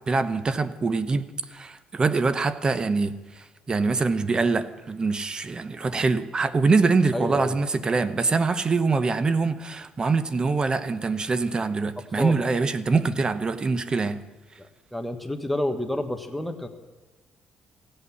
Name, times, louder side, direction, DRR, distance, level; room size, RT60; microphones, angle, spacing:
voice 1, 0.1-3.1 3.7-14.2, right 4 dB, 30° right, 12 dB, 0.8 m, -24 dB
voice 2, 7.1-7.6 12.2-12.4 14.6-16.7, left 1 dB, ahead, 6 dB, 1.3 m, -29 dB
15.5 x 8.5 x 7.0 m, 1.3 s
cardioid pair, 95°, 3 cm